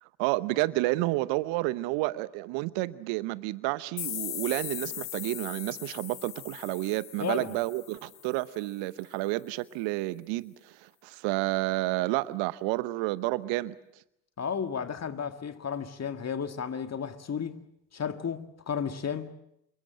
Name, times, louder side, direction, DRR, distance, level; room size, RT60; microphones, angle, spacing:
voice 1, 0.0-13.8, right 19 dB, 60° right, 0.9 m, -30 dB
sound 1, 4.0-8.6, left 13 dB, 80° left, 1.1 m, -39 dB
voice 2, 7.2-7.6 14.4-17.6 17.9-19.3, left 7 dB, 30° left, 1.9 m, -33 dB
27.0 x 22.5 x 7.7 m
figure-of-eight pair, 55°, 49 cm